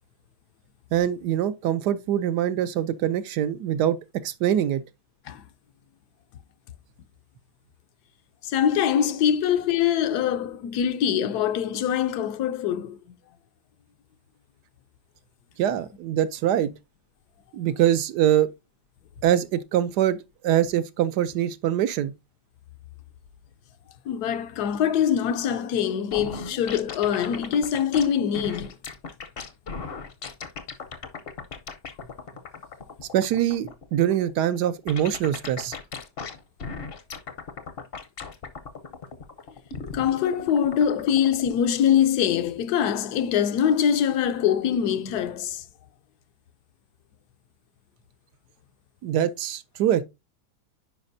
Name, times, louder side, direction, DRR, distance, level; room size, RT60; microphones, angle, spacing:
voice 1, 0.9-4.0 4.2-4.8 15.6-16.7 17.5-18.5 19.2-20.2 20.4-22.1 33.1-35.8 49.0-50.0, right 11 dB, 80° right, 1.2 m, -23 dB
voice 2, 8.4-13.0 24.1-28.7 39.9-45.6, left 9 dB, 75° left, 1.1 m, -23 dB
sound 1, 26.1-41.6, left 5 dB, 50° left, 0.8 m, -37 dB
9.7 x 5.0 x 2.6 m
omnidirectional pair, 1.8 m